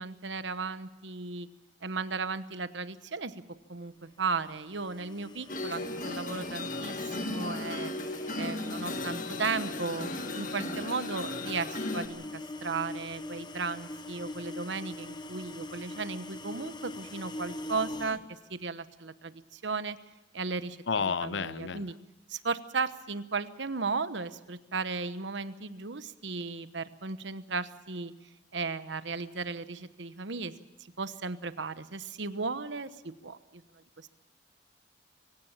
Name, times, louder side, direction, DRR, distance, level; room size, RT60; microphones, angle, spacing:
voice 1, 0.0-1.5 1.8-3.4 3.7-7.9 8.3-20.0 20.3-22.0 22.3-28.1 28.5-30.5 31.0-33.6 34.0-34.1, right 4 dB, 75° right, 13 dB, 1.1 m, -35 dB
sound 1, 4.3-18.2, left 1 dB, 25° left, 1.1 m, -43 dB
sound 2, 5.5-12.1, left 2 dB, 45° left, 1.6 m, -36 dB
voice 2, 20.9-21.8, left 5 dB, 70° left, 16 dB, 0.7 m, -31 dB
25.5 x 16.5 x 7.3 m, 1.1 s
head